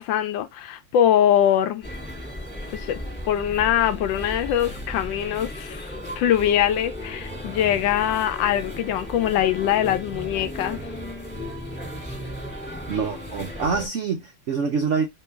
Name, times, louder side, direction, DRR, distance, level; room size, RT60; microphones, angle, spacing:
voice 1, 0.0-1.9 2.7-3.0 3.2-5.9 6.2-10.8, left 10 dB, 75° left, 1.2 m, -22 dB
sound 1, 1.8-13.9, left 1 dB, 5° left, 1.4 m, -35 dB
voice 2, 12.9-15.0, right 5 dB, 85° right, 0.6 m, -25 dB
3.1 x 3.1 x 3.3 m
omnidirectional pair, 2.1 m